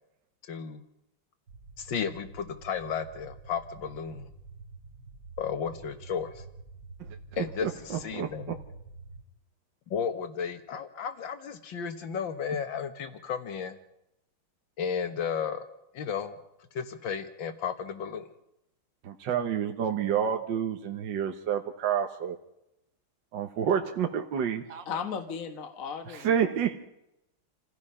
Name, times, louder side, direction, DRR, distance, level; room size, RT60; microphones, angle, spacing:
voice 1, 0.4-0.8 1.8-4.3 5.4-6.4 7.4-8.6 9.9-13.8 14.8-15.7 15.9-16.4 16.7-18.3, left 7 dB, 65° left, 8 dB, 2.2 m, -33 dB
sound 1, 1.5-9.2, right 3 dB, 45° right, 2.4 m, -48 dB
voice 2, 7.3-8.6 19.0-22.4 23.3-24.8 26.1-26.8, right 8 dB, 65° right, 4 dB, 1.8 m, -29 dB
voice 3, 24.9-26.4, left 6 dB, 45° left, 5 dB, 1.7 m, -35 dB
28.5 x 16.0 x 5.6 m, 0.85 s
omnidirectional pair, 2.3 m